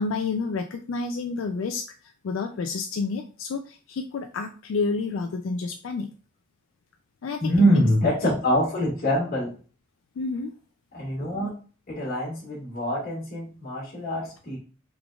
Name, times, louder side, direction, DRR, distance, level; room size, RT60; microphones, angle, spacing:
voice 1, 0.0-6.1 7.2-7.8 10.2-10.5, left 4 dB, 65° left, 5 dB, 0.3 m, -30 dB
voice 2, 7.4-9.5 10.9-11.5 11.9-14.6, equal, 50° left, -5 dB, 1.6 m, -24 dB
3.8 x 3.6 x 2.3 m, 0.38 s
head